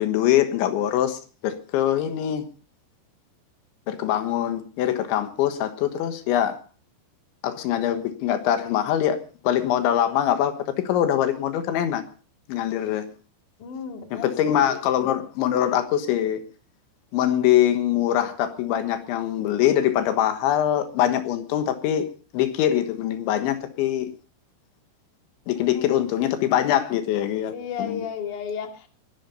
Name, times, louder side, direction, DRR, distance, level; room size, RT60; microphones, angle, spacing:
voice 1, 0.0-2.4 3.9-6.6 7.4-12.0 12.5-13.1 14.1-16.4 17.1-22.1 22.3-24.1 25.5-27.5 27.8-28.0, left 11 dB, 85° left, 9 dB, 3.7 m, -23 dB
voice 2, 13.6-14.3 14.6-14.8 25.5-25.8 27.5-28.9, left 7 dB, 50° left, 5 dB, 3.5 m, -33 dB
21.0 x 12.5 x 5.4 m, 0.40 s
omnidirectional pair, 5.3 m